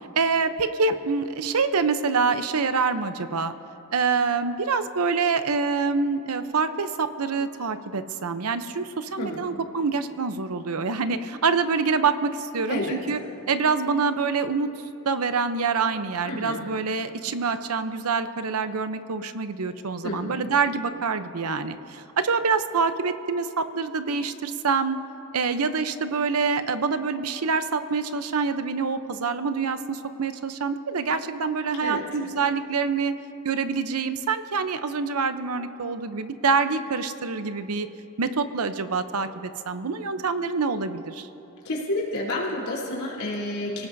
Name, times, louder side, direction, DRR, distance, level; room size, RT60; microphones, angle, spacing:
voice 1, 0.2-3.5 3.9-13.2 13.5-14.7 15.1-25.0 25.3-33.2 33.4-37.9 38.2-41.3, right 5 dB, 85° right, 10 dB, 0.8 m, -26 dB
voice 2, 12.7-13.2 16.2-16.6 20.0-20.3 31.8-32.0 41.6-43.9, left 1 dB, 80° left, -5 dB, 3.7 m, -30 dB
29.5 x 18.0 x 2.7 m, 3.0 s
head